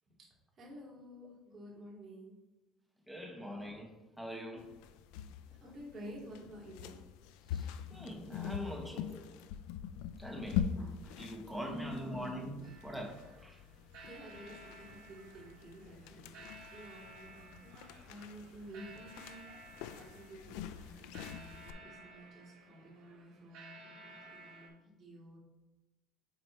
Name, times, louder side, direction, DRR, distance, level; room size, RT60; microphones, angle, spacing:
voice 1, 0.6-2.3 5.5-6.9 11.4-12.3 14.0-25.4, right 1 dB, 35° right, -5 dB, 2.2 m, -52 dB
voice 2, 3.1-4.7 7.5-9.3 10.2-13.6, equal, ahead, 0 dB, 1.1 m, -43 dB
sound 1, 4.6-21.7, left 9 dB, 90° left, 0.3 m, -44 dB
sound 2, 12.6-24.7, right 2 dB, 70° right, 1.9 m, -55 dB
7.5 x 3.1 x 4.4 m, 1.0 s
cardioid pair, 145°, 0 cm